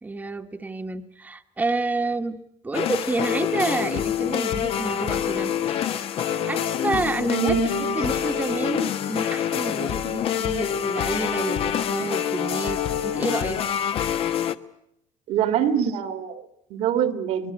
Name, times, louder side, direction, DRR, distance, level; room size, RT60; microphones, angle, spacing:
voice 1, 0.0-2.4 2.6-6.1 6.5-7.6 7.9-13.6, right 3 dB, 15° right, 4 dB, 1.2 m, -29 dB
sound 1, 2.7-14.5, left 9 dB, 55° left, 1.1 m, -26 dB
voice 2, 7.3-8.0 15.3-17.5, right 9 dB, 70° right, 9 dB, 2.0 m, -25 dB
23.0 x 21.0 x 9.7 m, 0.78 s
cardioid pair, 130°, 12 cm